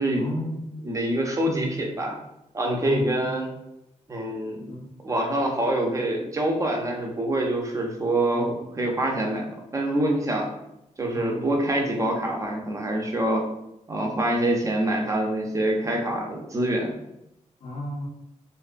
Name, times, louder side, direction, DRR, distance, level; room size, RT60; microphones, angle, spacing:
voice 1, 0.1-0.7 2.7-3.3 4.7-4.9 8.3-8.6 11.1-11.5 13.9-14.4 17.6-18.1, left 1 dB, 55° left, -1 dB, 0.6 m, -34 dB
voice 2, 0.8-2.2 2.5-3.5 4.1-4.7 5.0-10.5 11.0-13.4 13.9-16.9, right 1 dB, 25° right, 0 dB, 0.5 m, -25 dB
2.5 x 2.2 x 2.4 m, 0.83 s
wide cardioid pair, 115°, 12 cm